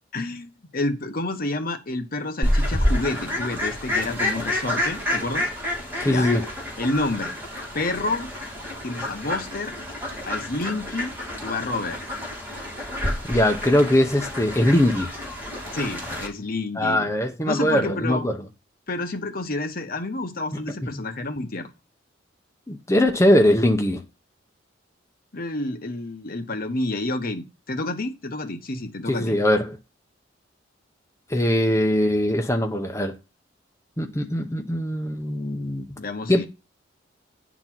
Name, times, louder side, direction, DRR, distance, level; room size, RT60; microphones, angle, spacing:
voice 1, 0.1-5.5 6.0-6.3 6.8-7.3 7.7-8.3 8.8-9.7 10.2-11.1 11.4-12.0 15.7-17.0 17.4-18.3 18.9-21.7 25.3-29.4 36.0-36.5, left 2 dB, 50° left, 1.0 m, -29 dB
Fowl, 2.4-16.3, left 1 dB, 10° right, 3.3 m, -29 dB
voice 2, 6.0-6.5 13.3-15.1 16.8-18.4 20.6-20.9 22.7-24.0 29.1-29.8 31.3-33.2 34.0-35.9 36.3-36.5, left 1 dB, 15° left, 0.8 m, -21 dB
10.5 x 4.1 x 6.0 m
head